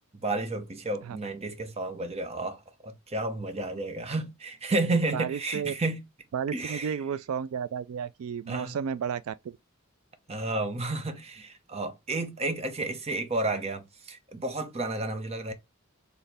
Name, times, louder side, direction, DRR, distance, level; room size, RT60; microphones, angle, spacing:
voice 1, 0.2-6.0 6.5-7.0 8.5-8.8 10.3-15.5, right 2 dB, 30° right, 0.9 m, -31 dB
voice 2, 5.1-5.7 6.3-9.6, right 7 dB, 90° right, 0.4 m, -32 dB
4.3 x 3.4 x 3.3 m
head